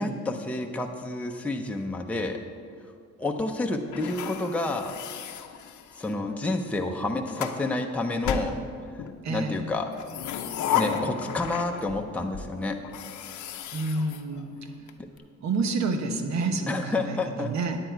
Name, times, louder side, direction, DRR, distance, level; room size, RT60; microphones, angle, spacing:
voice 1, 0.0-2.4 3.2-4.9 6.0-8.5 8.9-9.9 10.7-12.8 16.7-17.8, left 2 dB, 5° left, 2 dB, 0.7 m, -29 dB
sound 1, 3.9-6.2 6.9-7.6 8.2-9.2 9.9-12.0 12.3-12.4 12.8-14.9, left 8 dB, 75° left, 0.8 m, -33 dB
voice 2, 9.2-9.6 13.7-14.6 15.4-17.8, right 3 dB, 65° right, 6 dB, 1.1 m, -29 dB
10.0 x 9.0 x 4.6 m, 2.2 s
cardioid pair, 90°, 30 cm